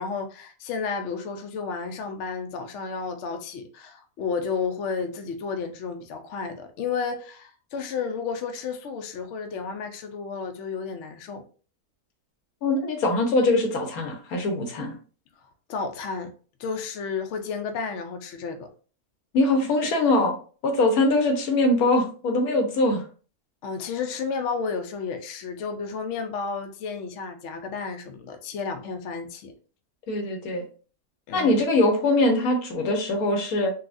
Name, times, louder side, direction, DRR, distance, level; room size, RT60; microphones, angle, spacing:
voice 1, 0.0-11.4 15.7-16.3 16.6-18.7 23.6-29.5 31.3-31.6, left 5 dB, 65° left, 6 dB, 0.8 m, -32 dB
voice 2, 12.6-14.9 19.3-20.4 20.6-23.0 30.1-30.6 31.3-33.7, left 2 dB, 80° left, 3 dB, 1.3 m, -22 dB
4.0 x 2.3 x 2.5 m, 0.39 s
omnidirectional pair, 1.5 m